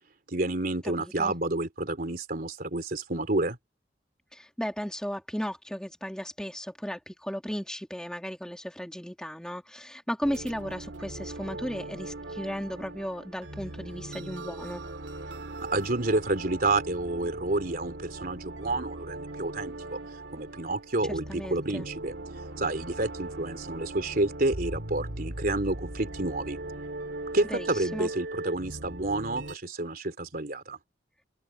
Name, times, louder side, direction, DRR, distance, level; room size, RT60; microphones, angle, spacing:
voice 1, 0.3-3.6 15.6-20.0 20.3-22.1 22.6-26.6 27.3-30.8, right 2 dB, 55° right, 3.4 m, -29 dB
voice 2, 1.0-1.3 4.3-14.8 21.3-21.9 27.5-28.1, equal, 5° left, 2.4 m, -35 dB
sound 1, 10.2-29.6, right 2 dB, 85° right, 2.5 m, -39 dB
open air
head